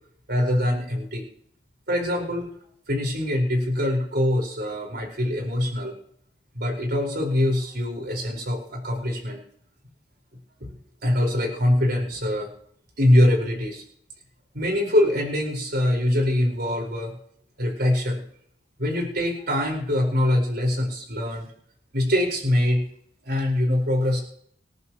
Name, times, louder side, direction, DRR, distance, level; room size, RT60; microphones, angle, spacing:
voice 1, 0.3-1.2 1.9-2.5 2.9-5.9 6.5-9.4 10.6-10.7 11.0-12.5 13.0-13.8 14.5-17.1 17.6-18.2 18.8-21.5 21.9-22.8 23.2-24.2, left 1 dB, 60° right, 0 dB, 5.0 m, -23 dB
26.5 x 11.0 x 3.1 m, 0.65 s
head